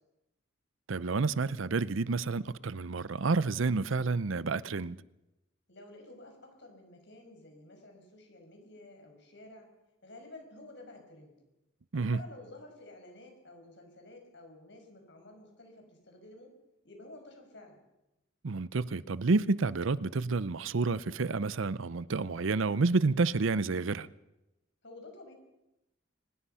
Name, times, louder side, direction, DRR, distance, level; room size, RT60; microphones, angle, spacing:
voice 1, 0.9-5.0 11.9-12.2 18.4-24.1, right 3 dB, 70° right, 0.6 m, -29 dB
voice 2, 5.7-9.7 10.0-11.3 11.9-16.5 16.8-17.8 24.8-25.3, left 2 dB, 60° left, 5.9 m, -51 dB
23.5 x 20.0 x 5.7 m
head